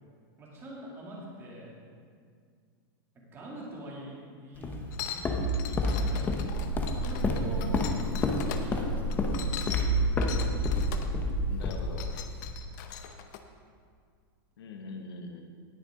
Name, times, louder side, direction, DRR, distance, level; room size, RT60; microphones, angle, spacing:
voice 1, 0.4-1.7 3.3-7.7 8.5-9.2, right 1 dB, 20° right, -5 dB, 2.6 m, -44 dB
Walk footsteps, 4.6-12.5, left 1 dB, 15° left, 0.8 m, -29 dB
sound 1, 4.9-8.6 9.1-11.1 11.6-13.4, left 9 dB, 50° left, 0.8 m, -41 dB
voice 2, 7.6-8.0 11.5-12.1 14.6-15.4, left 4 dB, 85° left, 3 dB, 1.1 m, -42 dB
18.5 x 6.7 x 3.8 m, 2.1 s
supercardioid pair, 160°, 13 cm